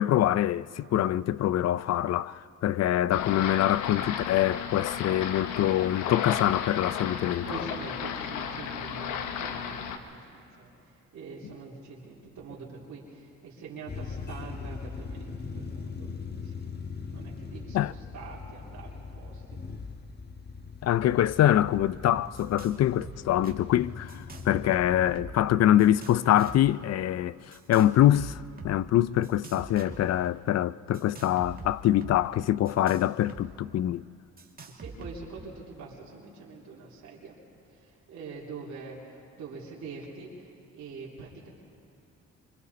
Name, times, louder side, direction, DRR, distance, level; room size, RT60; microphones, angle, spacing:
voice 1, 0.0-7.6 17.7-17.9 20.8-34.0, left 12 dB, 60° left, 0.5 m, -24 dB
sound 1, 3.1-10.0, left 7 dB, 90° left, 1.2 m, -34 dB
voice 2, 7.4-16.7 17.1-19.6 34.7-37.4 37.7-41.5, right 4 dB, 65° right, 3.3 m, -44 dB
sound 2, 13.9-25.2, left 4 dB, 35° left, 1.3 m, -40 dB
sound 3, 21.7-21.9 22.1-22.8 23.0-23.5 24.1-25.5 25.8-26.7 27.5-28.8 29.2-30.3 30.9-33.5 33.7-33.8 34.4-35.4, right 3 dB, 30° right, 2.1 m, -44 dB
25.5 x 25.0 x 4.2 m
cardioid pair, 90°, 30 cm